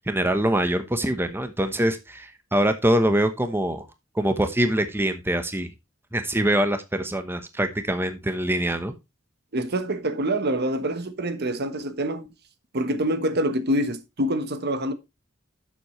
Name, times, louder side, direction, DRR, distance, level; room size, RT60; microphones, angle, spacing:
voice 1, 0.1-3.9 4.1-5.7 6.1-8.9, right 1 dB, 10° right, 1.0 m, -24 dB
voice 2, 9.5-12.3 12.7-14.9, right 1 dB, 55° right, 1.2 m, -26 dB
11.5 x 7.4 x 3.1 m
head